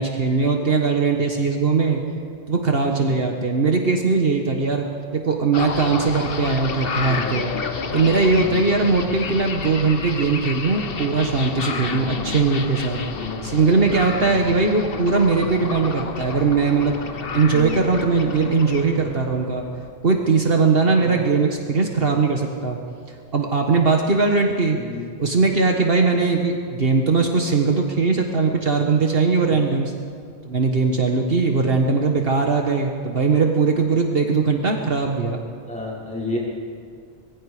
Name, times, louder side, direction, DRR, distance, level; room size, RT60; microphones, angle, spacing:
voice 1, 0.0-2.0 2.5-4.9 5.1-7.5 7.9-13.0 13.4-17.0 17.3-19.6 20.0-22.8 23.3-24.8 25.2-29.9 30.4-35.4, right 4 dB, 60° right, 2 dB, 1.6 m, -20 dB
sound 1, 5.5-19.9, left 5 dB, 60° left, 1.3 m, -30 dB
voice 2, 7.0-7.4 8.4-8.6 11.9-12.2 13.1-13.4 14.3-14.5 17.5-17.8 20.9-21.2 24.7-25.1 29.5-29.6 35.6-36.4, left 2 dB, 5° left, -6 dB, 5.9 m, -32 dB
25.5 x 21.5 x 5.0 m, 2.1 s
omnidirectional pair, 1.1 m